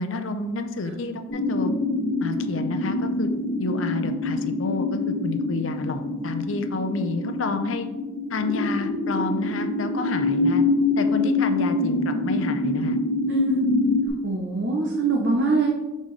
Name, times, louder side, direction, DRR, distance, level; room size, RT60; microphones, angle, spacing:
voice 1, 0.0-1.7 2.2-3.3 3.6-7.9 8.3-10.6 11.0-13.0, left 3 dB, 75° left, 8 dB, 0.6 m, -29 dB
sound 1, 1.3-14.1, left 2 dB, 55° left, 1.2 m, -25 dB
voice 2, 13.3-13.7 14.2-15.7, right 3 dB, 60° right, 0 dB, 0.7 m, -23 dB
6.4 x 5.4 x 3.2 m, 1.1 s
head